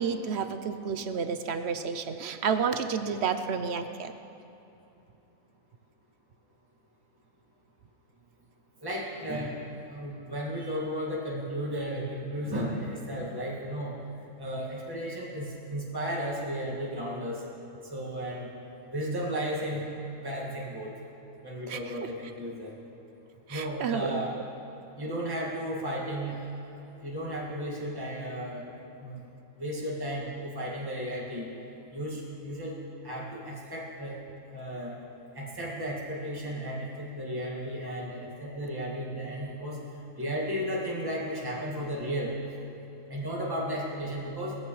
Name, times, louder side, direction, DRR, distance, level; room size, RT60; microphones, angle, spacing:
voice 1, 0.0-4.1 21.7-21.8 23.5-24.2, right 6 dB, 60° right, 9 dB, 0.8 m, -30 dB
voice 2, 8.8-9.6 9.9-13.9 14.4-17.4 17.9-18.5 18.9-19.9 20.2-20.9 21.4-22.7 23.5-24.4 25.0-26.4 27.0-28.7 29.0-29.2 29.6-31.5 31.9-32.8 33.0-34.2 34.5-35.0 35.3-39.8 40.2-42.4 43.1-44.6, equal, 15° right, -4 dB, 2.0 m, -34 dB
19.5 x 14.5 x 3.2 m, 2.9 s
omnidirectional pair, 1.5 m